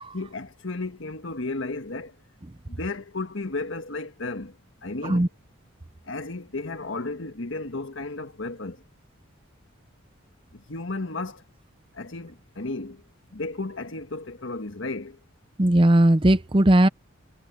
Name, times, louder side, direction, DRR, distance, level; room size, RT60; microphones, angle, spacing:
voice 1, 0.1-2.2 2.7-4.6 4.8-5.2 6.0-8.8 10.5-11.4 11.9-13.0 13.3-15.2, left 3 dB, 70° left, 1.5 m, -33 dB
voice 2, 15.6-16.9, right 1 dB, 25° right, 0.7 m, -18 dB
head